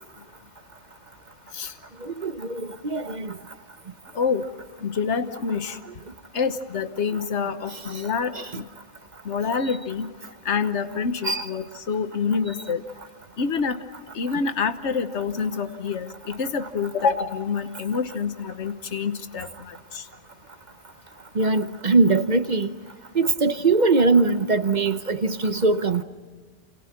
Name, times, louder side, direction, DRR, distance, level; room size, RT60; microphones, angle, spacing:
voice 1, 2.2-3.3 8.3-8.4 11.2-11.5 21.4-22.7 23.1-26.0, right 3 dB, 40° right, 1.0 m, -21 dB
voice 2, 4.8-5.8 6.3-8.6 9.2-10.1 10.4-12.8 13.4-13.8 14.1-20.0, left 5 dB, 65° left, 1.5 m, -27 dB
29.5 x 28.0 x 6.0 m
omnidirectional pair, 1.3 m